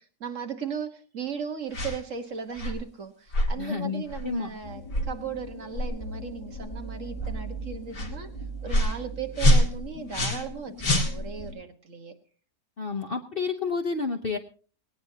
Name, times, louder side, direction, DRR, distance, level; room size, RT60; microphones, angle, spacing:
voice 1, 0.0-8.3 8.6-12.1, right 7 dB, 50° right, 5 dB, 1.7 m, -37 dB
sound 1, 1.7-2.0 2.5-2.8 3.3-3.5 4.1-4.3 4.9-5.1 5.7-5.9 6.5-6.7 7.2-7.3 7.9-8.1 8.7-9.0 9.4-10.5 10.8-11.5, equal, 90° left, 2.9 m, -24 dB
voice 2, 3.6-4.5 12.8-14.4, left 5 dB, 45° left, 4 dB, 0.9 m, -30 dB
sound 2, 4.6-11.6, right 1 dB, 20° left, 1.6 m, -40 dB
19.0 x 18.0 x 2.8 m, 0.40 s
omnidirectional pair, 1.8 m